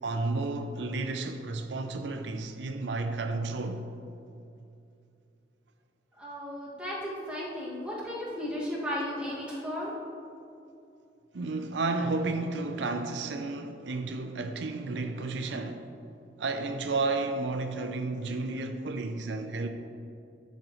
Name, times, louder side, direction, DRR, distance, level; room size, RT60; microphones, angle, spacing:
voice 1, 0.0-3.9 11.3-15.9 16.4-19.7, right 3 dB, 80° right, 0.5 m, -32 dB
voice 2, 6.2-9.9, equal, 5° right, 2.0 m, -35 dB
11.5 x 7.3 x 3.1 m
head